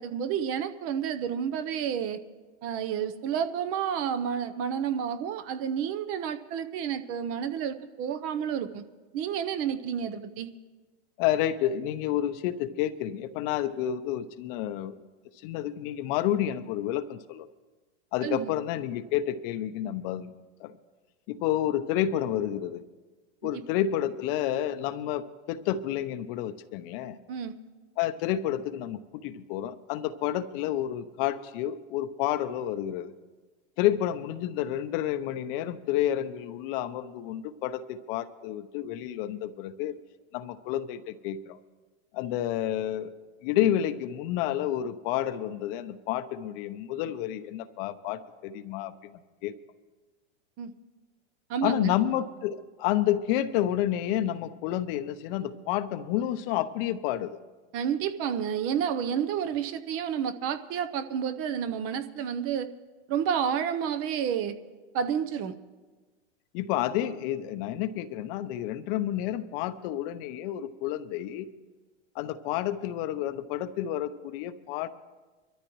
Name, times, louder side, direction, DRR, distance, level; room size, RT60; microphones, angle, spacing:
voice 1, 0.0-2.2 2.6-8.8 9.1-10.5 18.2-18.5 23.4-23.6 27.3-27.6 50.6-50.7 51.5-51.9 57.7-62.7 63.1-64.6 64.9-65.5, right 8 dB, 40° right, 11 dB, 0.8 m, -30 dB
voice 2, 11.2-15.0 15.4-17.5 18.1-20.7 21.3-22.8 23.4-27.2 28.0-33.1 33.8-39.9 40.3-41.6 42.1-43.1 43.4-49.5 51.6-57.4 66.5-71.5 72.1-74.9, left 11 dB, 50° left, 12 dB, 0.8 m, -30 dB
23.5 x 13.5 x 3.1 m, 1.3 s
hypercardioid pair, 125°, 35 cm